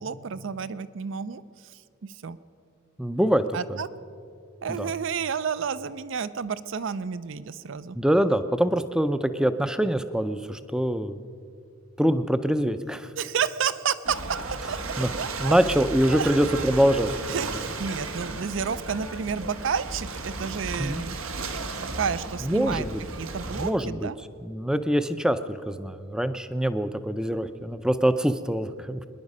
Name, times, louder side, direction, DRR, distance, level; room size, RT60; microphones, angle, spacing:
voice 1, 0.0-2.4 3.5-3.9 4.6-8.0 13.2-14.2 14.7-14.8 15.2-15.5 16.1-16.3 17.3-21.2 21.8-22.9 23.2-24.2, right 6 dB, 60° right, 16 dB, 0.5 m, -31 dB
voice 2, 3.0-3.4 3.7-3.8 4.7-4.9 8.0-11.2 12.0-13.1 15.0-15.1 15.4-17.4 20.8-21.0 22.4-22.9 23.5-24.1 24.4-29.0, equal, 5° right, 10 dB, 0.4 m, -24 dB
Ocean / Boat Water vehicle, 14.0-23.7, right 3 dB, 85° right, 1.2 m, -34 dB
25.0 x 10.5 x 5.4 m, 2.5 s
head